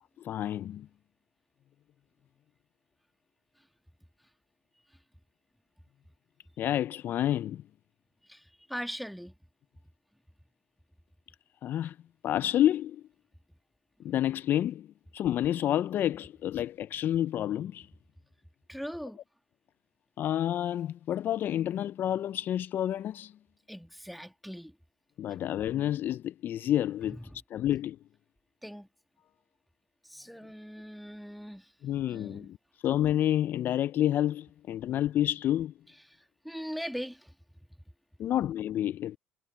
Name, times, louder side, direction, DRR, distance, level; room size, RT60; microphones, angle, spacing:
voice 1, 0.2-0.9 6.6-7.6 11.6-12.0 12.2-13.0 14.0-14.9 15.1-17.9 20.2-23.3 25.2-27.2 27.5-28.0 31.8-32.6 32.8-35.7 38.2-39.2, left 12 dB, 55° left, 0.3 m, -29 dB
voice 2, 8.3-9.4 18.7-19.2 23.7-24.8 27.1-27.4 28.6-28.9 30.0-31.7 32.1-32.5 36.1-36.2 36.4-37.3, equal, ahead, 1.7 m, -40 dB
cardioid pair, 110°, 4 cm